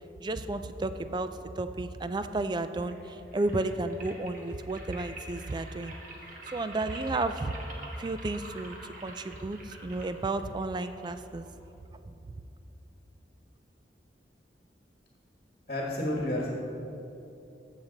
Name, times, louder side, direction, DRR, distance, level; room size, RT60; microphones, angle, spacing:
voice 1, 0.2-1.3 1.6-6.0 6.5-7.5 8.0-8.8 9.0-11.5, right 2 dB, 25° right, 10 dB, 0.3 m, -32 dB
sound 1, 2.8-11.8, right 2 dB, 45° right, 1.4 m, -47 dB
voice 2, 15.7-16.5, left 1 dB, 40° left, -2 dB, 1.4 m, -30 dB
14.5 x 6.6 x 3.9 m, 2.9 s
head